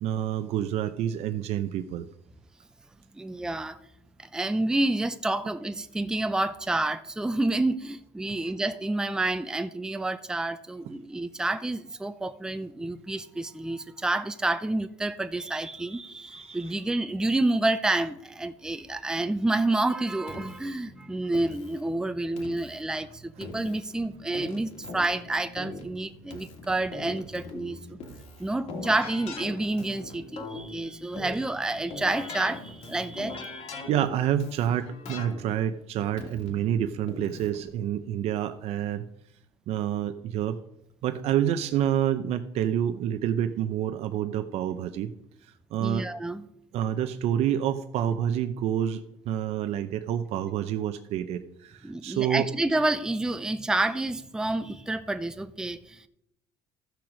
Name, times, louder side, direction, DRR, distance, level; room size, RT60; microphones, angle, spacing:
voice 1, 0.0-2.1 16.3-16.6 33.9-39.0 39.7-40.6 41.0-45.1 45.4-46.1 46.7-52.5, right 10 dB, 65° right, 8 dB, 0.6 m, -28 dB
voice 2, 3.1-3.8 4.2-28.0 28.4-33.9 45.8-46.5 51.8-56.1, right 2 dB, 5° right, 10 dB, 0.5 m, -29 dB
Keyboard (musical), 20.3-37.7, left 3 dB, 70° left, 2.6 m, -42 dB
14.0 x 6.1 x 5.0 m, 0.80 s
cardioid pair, 110°, 12 cm